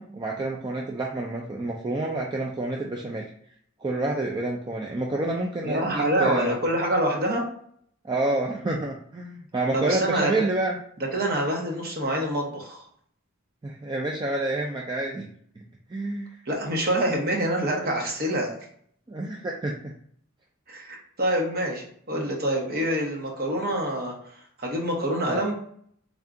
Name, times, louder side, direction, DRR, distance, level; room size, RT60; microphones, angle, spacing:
voice 1, 0.0-3.3 3.8-6.6 8.0-10.8 13.6-15.3 15.6-15.7 15.9-16.3 19.1-19.9 22.1-22.3 25.2-25.4, right 2 dB, 20° right, -1 dB, 0.3 m, -28 dB
voice 2, 5.6-7.4 9.7-10.3 11.1-12.8 16.5-18.5 20.7-25.6, right 1 dB, 45° right, 0 dB, 1.0 m, -26 dB
3.5 x 2.4 x 3.7 m, 0.64 s
head